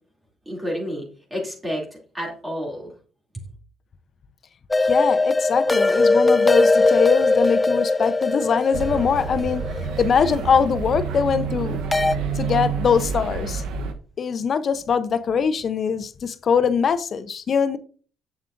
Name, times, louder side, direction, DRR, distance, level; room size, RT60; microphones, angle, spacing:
voice 1, 0.5-2.9, equal, 15° right, 2.7 m, -30 dB
sound 1, 4.7-10.8 11.9-12.2, left 3 dB, 20° left, 0.3 m, -20 dB
voice 2, 4.8-9.7 10.0-11.8 12.4-13.6 14.2-17.8, left 6 dB, 50° left, 0.7 m, -22 dB
sound 2, 8.7-13.9, right 6 dB, 80° right, 0.9 m, -28 dB
7.3 x 7.2 x 2.6 m
cardioid pair, 80°, 0 cm